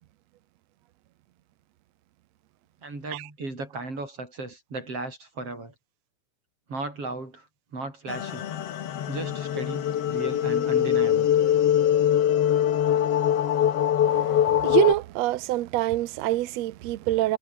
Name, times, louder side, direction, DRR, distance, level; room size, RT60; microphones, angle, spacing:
voice 1, 2.8-5.7 6.7-7.5 7.7-8.5 9.1-11.3, right 3 dB, 35° right, 9.1 m, -36 dB
sound 1, 8.1-14.9, left 10 dB, 55° left, 1.8 m, -23 dB
voice 2, 14.1-17.4, right 15 dB, 85° right, 1.5 m, -25 dB
omnidirectional pair, 4.3 m